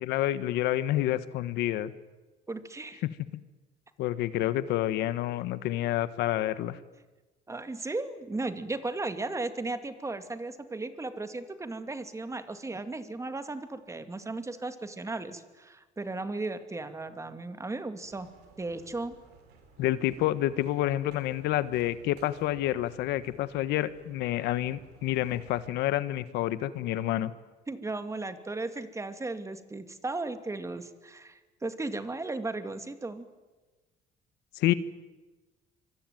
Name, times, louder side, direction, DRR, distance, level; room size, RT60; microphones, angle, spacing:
voice 1, 0.0-1.9 3.3-3.4 4.0-6.8 19.8-27.3 34.5-34.7, left 14 dB, 90° left, 14 dB, 1.4 m, -28 dB
voice 2, 2.5-3.0 7.5-18.3 18.6-19.2 27.7-33.3, right 2 dB, 15° right, 9 dB, 2.4 m, -36 dB
sound 1, 18.0-25.6, right 5 dB, 80° right, 5.6 m, -57 dB
25.0 x 24.5 x 9.3 m, 1.2 s
cardioid pair, 110°, 17 cm